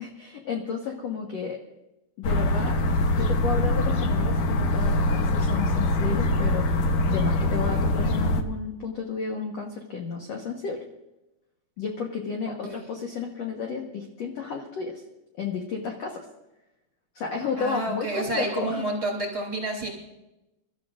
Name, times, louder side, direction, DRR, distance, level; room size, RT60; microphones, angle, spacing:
voice 1, 0.0-1.6 2.2-2.8 3.2-10.8 11.8-15.0 15.4-16.2 17.1-18.8, left 5 dB, 60° left, 1 dB, 1.8 m, -32 dB
sound 1, 2.2-8.4, left 1 dB, 85° left, 1.5 m, -23 dB
voice 2, 12.4-12.8 17.6-19.9, right 2 dB, 20° right, 0 dB, 3.2 m, -30 dB
28.5 x 13.0 x 2.5 m, 0.95 s
omnidirectional pair, 4.5 m